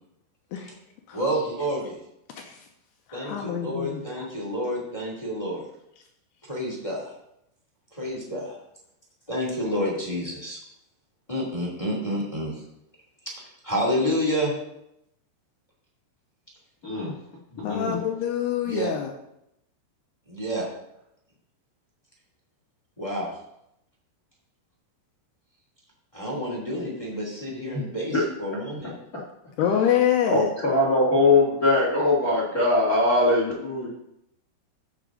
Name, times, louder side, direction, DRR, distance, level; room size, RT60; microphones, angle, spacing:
voice 1, 1.1-1.9 3.1-5.6 6.5-7.1 7.9-8.6 9.3-10.6 11.3-12.5 13.2-13.3 13.6-14.5 18.6-18.9 20.3-20.7 23.0-23.3 26.1-28.9, equal, 10° left, -3 dB, 1.5 m, -29 dB
voice 2, 3.1-4.3 17.6-19.1 29.6-30.5, left 9 dB, 75° left, 3 dB, 2.6 m, -26 dB
voice 3, 16.8-17.1 17.5-18.0 28.1-28.2 29.6-29.7 30.3-33.9, left 2 dB, 40° left, -4 dB, 1.3 m, -21 dB
15.5 x 6.0 x 3.9 m, 0.80 s
omnidirectional pair, 5.1 m